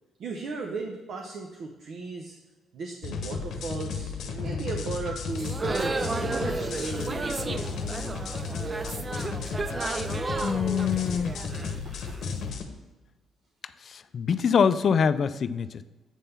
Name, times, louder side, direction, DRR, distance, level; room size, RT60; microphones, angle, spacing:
voice 1, 0.2-2.4 2.7-7.8 11.8-12.2, right 4 dB, 65° right, 2 dB, 0.7 m, -37 dB
sound 1, 3.0-12.6, left 5 dB, 70° left, 0.8 m, -34 dB
sound 2, 5.3-12.3, right 3 dB, 25° right, 0.4 m, -32 dB
voice 2, 10.4-11.3 13.9-15.8, left 6 dB, 50° left, 14 dB, 0.3 m, -24 dB
8.1 x 3.5 x 5.7 m, 1.2 s
cardioid pair, 90°, 0 cm